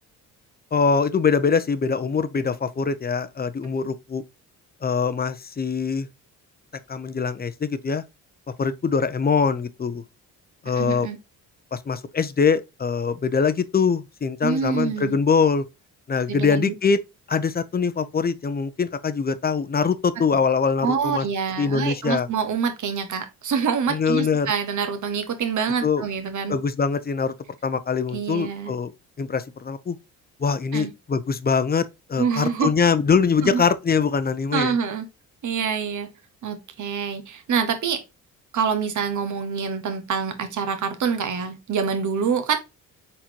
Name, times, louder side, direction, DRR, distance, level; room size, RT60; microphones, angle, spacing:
voice 1, 0.7-4.2 4.8-6.1 6.9-8.0 8.6-10.0 10.6-11.1 11.7-15.6 16.1-17.0 17.3-21.2 21.6-22.3 23.9-24.5 25.8-26.0 26.5-27.3 27.6-28.9 29.2-30.0 30.4-34.7, left 5 dB, 25° left, 0.6 m, -23 dB
voice 2, 10.7-11.2 14.4-15.2 16.3-16.7 20.8-26.6 28.1-28.7 30.7-30.9 32.2-32.7 33.4-33.6 34.5-35.0 35.4-36.1 36.4-38.0 38.5-42.6, right 6 dB, 55° right, 1.3 m, -26 dB
4.2 x 4.2 x 2.9 m
cardioid pair, 75°, 35 cm